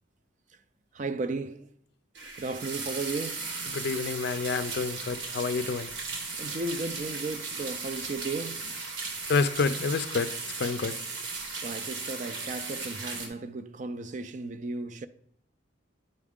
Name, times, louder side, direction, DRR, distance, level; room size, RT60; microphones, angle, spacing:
voice 1, 0.9-1.7 2.4-3.5 6.3-8.7 11.5-15.1, right 3 dB, 40° right, 0.4 m, -35 dB
sound 1, 2.1-13.3, right 4 dB, 80° right, 1.4 m, -36 dB
voice 2, 3.7-5.9 9.3-11.1, left 4 dB, 55° left, 0.4 m, -29 dB
9.2 x 4.8 x 3.6 m
head